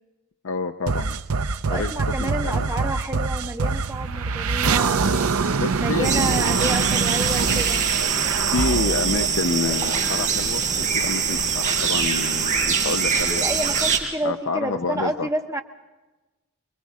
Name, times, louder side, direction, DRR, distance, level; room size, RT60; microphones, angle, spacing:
voice 1, 0.4-1.2 1.7-1.9 2.2-2.7 5.6-6.1 7.4-7.6 8.5-13.4 14.2-15.3, left 4 dB, 65° left, 6 dB, 0.6 m, -28 dB
sound 1, 0.9-10.2, right 4 dB, 80° right, 0.7 m, -25 dB
voice 2, 1.7-5.3 5.8-7.8 13.3-15.6, right 1 dB, 15° right, 3 dB, 1.3 m, -29 dB
sound 2, 6.0-14.0, right 6 dB, 35° right, 5.0 m, -23 dB
26.5 x 22.0 x 4.7 m, 1.1 s
head